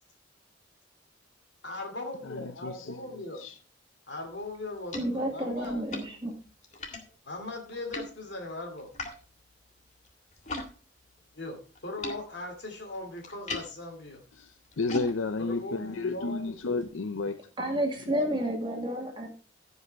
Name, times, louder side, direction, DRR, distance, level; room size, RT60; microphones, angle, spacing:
voice 1, 1.6-3.4 4.1-5.8 7.2-8.9 11.3-14.2 15.4-16.5, left 2 dB, 60° left, 2.5 m, -39 dB
voice 2, 2.2-3.6 14.3-17.4 17.7-17.8, left 3 dB, 80° left, 0.6 m, -33 dB
sound 1, 4.3-10.7 11.0-16.9, left 2 dB, 35° left, 2.0 m, -43 dB
voice 3, 5.0-6.4 17.6-19.3, right 1 dB, 25° right, 2.0 m, -30 dB
15.5 x 5.6 x 4.5 m
head